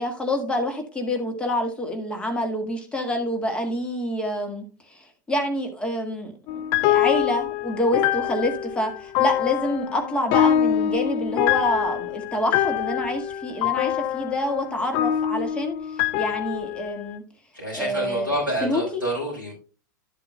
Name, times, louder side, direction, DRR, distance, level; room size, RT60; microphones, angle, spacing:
voice 1, 0.0-17.2 17.7-18.3 18.6-19.0, left 1 dB, 10° left, 4 dB, 1.7 m, -27 dB
sound 1, 6.5-17.1, left 11 dB, 35° left, 0.4 m, -24 dB
voice 2, 17.5-19.6, right 1 dB, 90° left, -6 dB, 4.1 m, -28 dB
11.5 x 7.6 x 2.2 m, 0.37 s
figure-of-eight pair, 90°, 10 cm